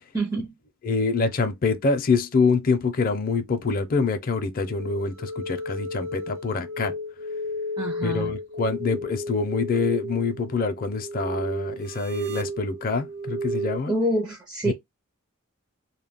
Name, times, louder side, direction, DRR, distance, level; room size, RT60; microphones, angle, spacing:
voice 1, 0.1-0.5 7.8-8.4 13.9-14.7, right 1 dB, 15° right, 0.4 m, -26 dB
voice 2, 0.8-6.9 8.0-13.9 14.7-14.8, left 4 dB, 40° left, 0.5 m, -25 dB
sound 1, 4.6-13.8, equal, 75° right, 0.5 m, -33 dB
2.2 x 2.0 x 3.4 m
head